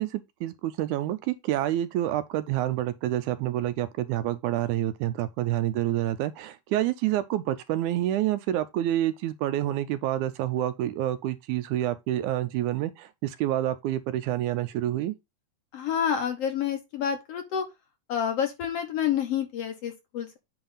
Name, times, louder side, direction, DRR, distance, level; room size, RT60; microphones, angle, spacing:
voice 1, 0.0-15.1, right 13 dB, 80° right, 1.9 m, -28 dB
voice 2, 15.7-17.7 18.1-20.4, left 8 dB, 60° left, 1.8 m, -28 dB
8.8 x 3.3 x 5.5 m
omnidirectional pair, 3.7 m